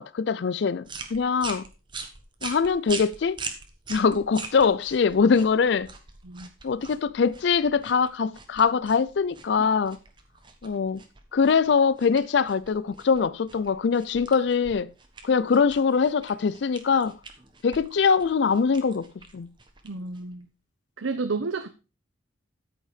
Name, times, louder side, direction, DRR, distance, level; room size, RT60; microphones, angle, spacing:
voice 1, 0.0-1.6 2.4-3.4 3.9-5.9 6.6-10.0 10.6-11.0 11.3-14.9 15.2-17.2 17.6-19.5, left 5 dB, 65° left, 0.4 m, -23 dB
sound 1, 0.8-20.4, right 4 dB, 25° right, 1.3 m, -43 dB
voice 2, 19.8-20.5 21.0-21.7, right 4 dB, 90° right, 0.8 m, -31 dB
13.5 x 5.5 x 4.9 m
head